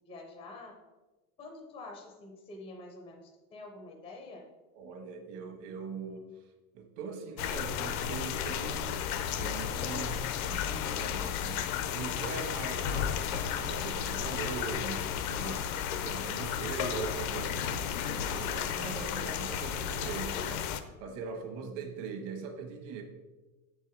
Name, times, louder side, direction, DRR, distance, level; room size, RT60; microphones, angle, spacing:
voice 1, 0.1-0.7 1.4-4.4 21.6-22.0, left 2 dB, 15° left, 2 dB, 0.5 m, -47 dB
voice 2, 4.7-6.4 6.7-9.0 9.4-13.1 13.4-15.7 15.9-23.0, right 5 dB, 55° right, 4 dB, 1.2 m, -41 dB
sound 1, 7.4-20.8, left 9 dB, 70° left, 0.7 m, -33 dB
7.4 x 4.7 x 4.4 m, 1.2 s
supercardioid pair, 170°, 44 cm